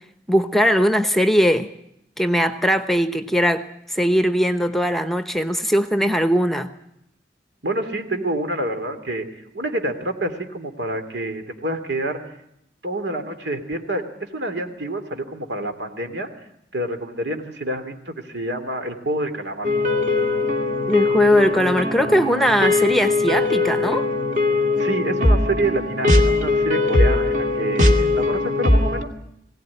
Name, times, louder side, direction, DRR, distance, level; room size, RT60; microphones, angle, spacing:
voice 1, 0.3-1.7 2.2-6.7 20.9-24.1, equal, ahead, 10 dB, 0.9 m, -20 dB
voice 2, 7.6-12.2 12.8-16.3 16.7-19.7 24.8-29.1, right 1 dB, 80° right, 6 dB, 2.9 m, -27 dB
sound 1, 19.6-29.0, left 2 dB, 45° right, 2.2 m, -20 dB
21.5 x 17.5 x 9.9 m, 0.79 s
head